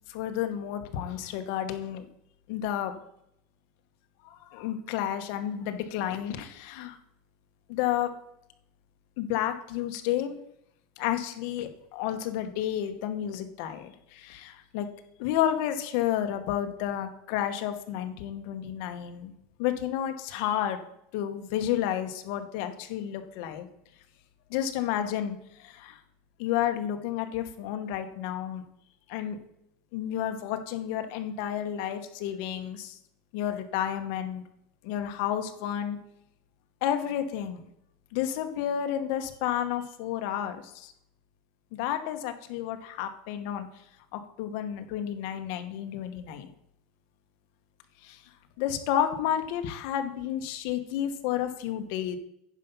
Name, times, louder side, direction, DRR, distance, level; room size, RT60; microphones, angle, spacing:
voice 1, 0.1-2.1 2.5-3.0 4.2-7.0 7.7-8.1 9.2-10.4 11.0-14.9 15.2-19.3 19.6-20.9 21.1-23.7 24.5-26.0 26.4-28.6 29.1-29.4 29.9-33.0 33.3-34.4 34.8-36.0 36.8-37.6 38.1-40.9 41.7-43.7 44.1-46.5 48.0-48.2 48.6-52.2, left 10 dB, 55° left, 7 dB, 1.1 m, -31 dB
9.7 x 5.8 x 5.4 m, 0.76 s
supercardioid pair, 160°, 0 cm